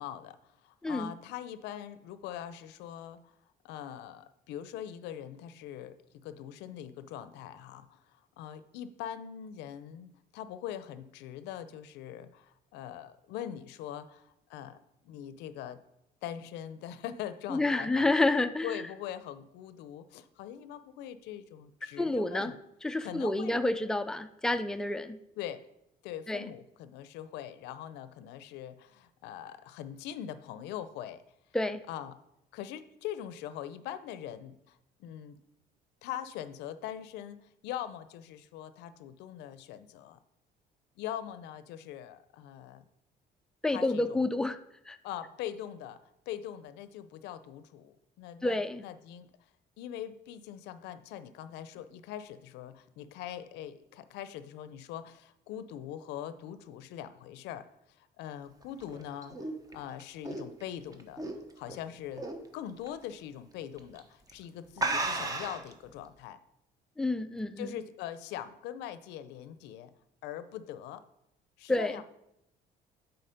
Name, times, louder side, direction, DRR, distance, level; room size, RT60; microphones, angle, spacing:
voice 1, 0.0-3.3 3.6-14.8 15.0-15.8 16.2-18.1 18.6-22.6 23.0-23.7 25.4-25.6 26.0-31.2 31.9-32.1 32.5-35.4 36.0-40.2 41.0-42.8 43.7-44.3 45.0-46.0 46.3-49.3 49.8-57.7 58.0-61.2 61.6-66.4 67.6-69.9 70.2-71.0 71.6-72.0, left 10 dB, 90° left, 13 dB, 0.5 m, -42 dB
voice 2, 17.5-18.8 22.0-22.5 22.8-25.2 26.3-26.5 31.5-31.8 43.6-44.6 44.9-45.0 48.4-48.8 67.0-67.7 71.7-72.0, left 2 dB, 5° left, 9 dB, 0.4 m, -29 dB
sound 1, 58.6-61.8 62.2-62.5 62.9-63.0 63.8-64.0 64.3-64.4 64.8-65.7, right 2 dB, 20° right, 0.9 m, -34 dB
8.5 x 4.0 x 5.2 m, 0.82 s
cardioid pair, 110°, 17 cm